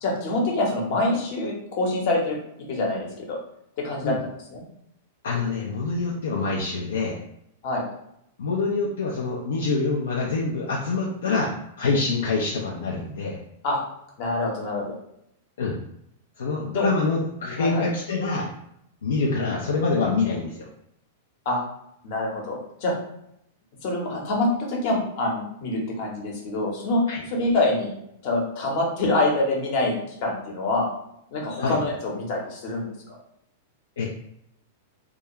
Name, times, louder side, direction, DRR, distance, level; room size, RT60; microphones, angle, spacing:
voice 1, 0.0-2.4 2.7-3.4 3.8-4.2 4.5-4.6 7.6-7.8 13.6-13.8 14.2-14.9 16.7-16.9 17.6-17.8 21.4-21.6 22.0-22.9 23.8-27.9 28.2-30.9 31.3-33.2, left 2 dB, 50° left, -1 dB, 0.9 m, -25 dB
voice 2, 5.2-7.1 8.4-11.5 11.8-13.4 15.6-15.8 16.4-18.5 19.0-20.6 27.1-27.2 31.6-31.8 34.0-34.1, left 3 dB, 70° left, -3 dB, 0.4 m, -25 dB
2.4 x 2.2 x 2.9 m, 0.75 s
figure-of-eight pair, 100°, 0 cm